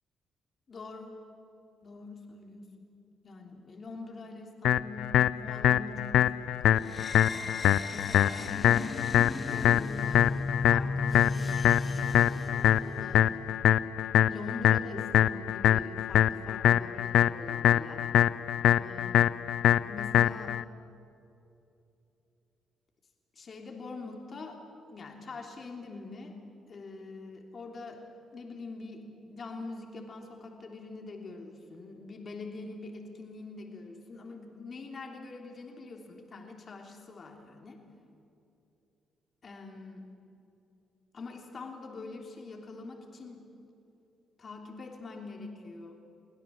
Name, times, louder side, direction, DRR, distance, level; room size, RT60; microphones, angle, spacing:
voice 1, 0.7-1.2 1.8-2.9 3.2-10.3 10.7-12.2 13.0-13.5 14.3-18.1 18.8-19.3 19.8-20.6 23.4-24.6 24.9-26.3 26.7-28.0 28.3-37.8 39.4-40.1 41.1-43.5 44.4-46.0, left 3 dB, 45° left, 2 dB, 3.3 m, -44 dB
sound 1, 4.6-20.6, left 11 dB, 80° left, 0.5 m, -24 dB
sound 2, 6.8-13.4, left 3 dB, 30° left, 1.4 m, -35 dB
23.0 x 16.5 x 7.7 m, 2.8 s
cardioid pair, 90°, 0 cm